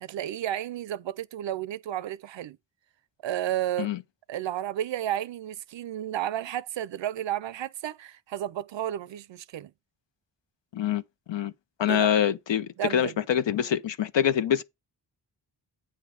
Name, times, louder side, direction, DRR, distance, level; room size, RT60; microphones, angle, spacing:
voice 1, 0.0-2.6 3.2-3.9 4.3-9.7 11.9-12.1 12.8-13.2, right 12 dB, 80° right, 0.6 m, -32 dB
voice 2, 10.7-11.0 11.3-11.5 11.8-14.6, left 9 dB, 85° left, 0.7 m, -25 dB
8.7 x 3.5 x 6.2 m
wide cardioid pair, 110°, 43 cm